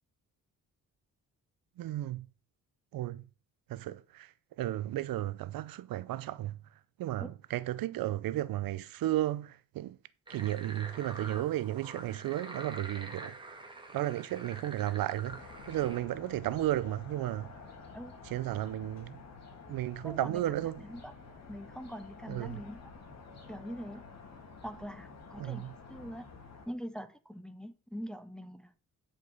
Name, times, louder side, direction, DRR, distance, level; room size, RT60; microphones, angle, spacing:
voice 1, 1.8-2.3 2.9-3.2 3.7-4.3 4.6-6.6 7.0-10.0 10.3-13.3 13.9-15.4 15.7-17.5 18.2-19.2 19.7-20.8 22.3-22.6 25.4-25.7, right 14 dB, 85° right, 0.6 m, -34 dB
sound 1, 10.3-16.0, right 2 dB, 15° right, 1.6 m, -46 dB
sound 2, 15.3-26.7, left 4 dB, 50° left, 2.8 m, -50 dB
voice 2, 20.0-21.1 21.5-22.9 23.5-24.1 24.6-26.3 26.7-28.7, equal, ahead, 0.6 m, -43 dB
9.9 x 5.4 x 5.3 m
cardioid pair, 140°, 34 cm